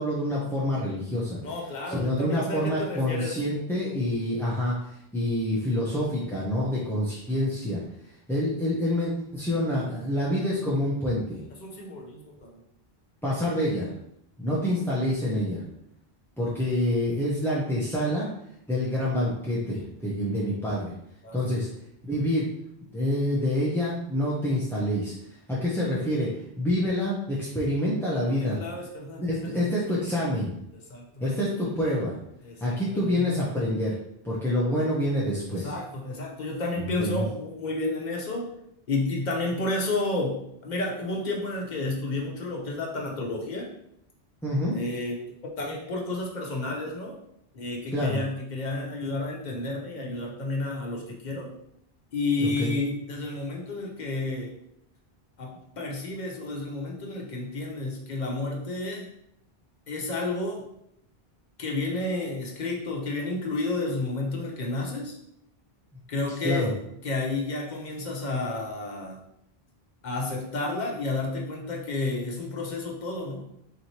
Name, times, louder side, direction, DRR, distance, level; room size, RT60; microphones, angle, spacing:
voice 1, 0.0-1.4 1.9-7.8 8.3-11.4 13.2-13.9 14.4-15.6 16.4-18.3 18.7-20.9 21.3-21.7 22.0-22.5 22.9-26.3 26.6-28.6 29.2-30.5 31.2-32.2 32.6-34.0 34.2-35.7 36.7-37.2 44.4-44.8 47.9-48.2 52.4-52.7 66.4-66.7, left 1 dB, 5° left, -7 dB, 0.5 m, -27 dB
voice 2, 1.4-3.4 11.6-12.6 21.2-21.6 28.5-29.6 30.9-31.1 32.4-33.3 35.5-38.5 38.9-43.7 44.7-47.1 47.5-51.5 52.1-54.5 55.4-59.1 59.9-60.6 61.6-65.1 66.1-66.7 67.0-69.2 70.0-73.4, left 2 dB, 50° left, -1 dB, 0.9 m, -31 dB
4.1 x 3.1 x 2.8 m, 0.75 s
omnidirectional pair, 1.1 m